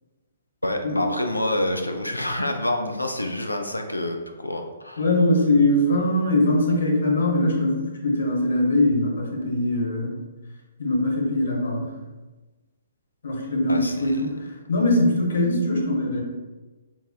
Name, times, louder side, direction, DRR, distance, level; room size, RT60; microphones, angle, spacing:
voice 1, 0.6-5.1 13.7-14.2, left 1 dB, 85° left, 4 dB, 0.3 m, -27 dB
voice 2, 5.0-10.1 10.8-11.9 13.2-14.3 14.7-16.2, left 1 dB, 60° left, -2 dB, 0.8 m, -21 dB
3.8 x 2.6 x 2.3 m, 1.2 s
figure-of-eight pair, 125°, 0 cm